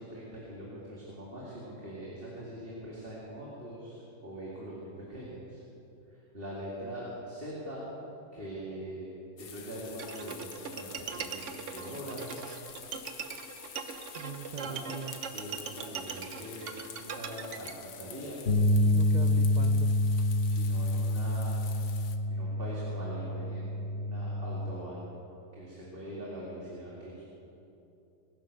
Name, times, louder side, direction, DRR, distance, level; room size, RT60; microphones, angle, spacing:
voice 1, 0.0-5.6 6.1-7.9 8.3-9.1 9.4-12.3 14.6-14.9 15.3-18.4 20.5-21.6 22.3-25.1 25.6-27.3, right 1 dB, 35° right, -6 dB, 2.6 m, -42 dB
sound 1, 9.4-22.2, left 8 dB, 85° left, 1.5 m, -48 dB
Bowed string instrument, 10.0-17.7, right 6 dB, 55° right, 1.1 m, -41 dB
voice 2, 14.1-15.2 18.9-19.9, right 6 dB, 75° right, 5 dB, 0.4 m, -41 dB
sound 2, 18.5-24.7, left 1 dB, 40° left, 1.3 m, -27 dB
21.0 x 10.0 x 6.6 m, 2.9 s
omnidirectional pair, 1.7 m